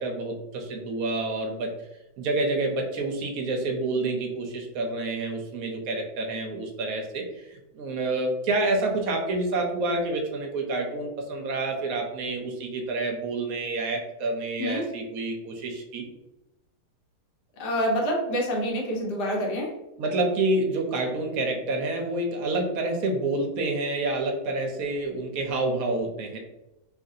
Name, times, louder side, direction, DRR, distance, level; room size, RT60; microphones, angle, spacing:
voice 1, 0.0-1.7 2.2-16.1 20.0-26.4, right 2 dB, 70° right, 2 dB, 1.0 m, -28 dB
voice 2, 17.6-19.7, equal, 85° left, -1 dB, 1.4 m, -27 dB
3.1 x 2.4 x 2.7 m, 0.93 s
omnidirectional pair, 1.8 m